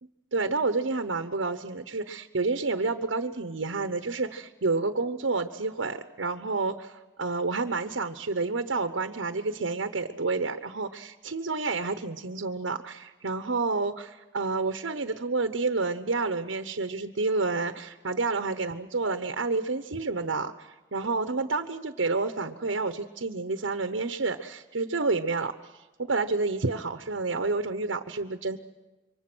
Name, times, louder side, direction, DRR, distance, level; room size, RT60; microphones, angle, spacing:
voice 1, 0.3-28.6, right 3 dB, 85° right, 8 dB, 1.0 m, -29 dB
27.0 x 24.5 x 6.2 m, 1.1 s
head